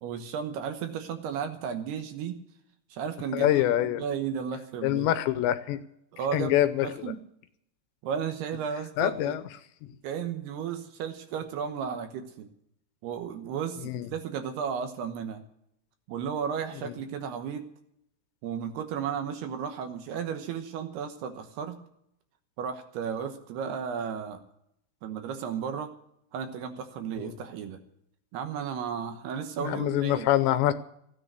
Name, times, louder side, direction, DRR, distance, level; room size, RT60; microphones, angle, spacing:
voice 1, 0.0-2.4 2.9-5.1 6.1-6.6 6.8-7.2 8.0-9.4 10.0-12.5 13.0-15.4 16.1-17.7 18.4-21.8 22.6-24.4 25.0-25.9 26.3-27.8 28.3-30.3, right 7 dB, 70° right, 7 dB, 2.8 m, -34 dB
voice 2, 3.3-4.1 4.8-5.8 6.3-7.1 9.0-9.4 13.8-14.1 16.8-16.9 27.2-27.4 29.6-30.7, left 13 dB, 80° left, 12 dB, 2.9 m, -25 dB
16.0 x 10.0 x 8.1 m, 0.75 s
omnidirectional pair, 5.4 m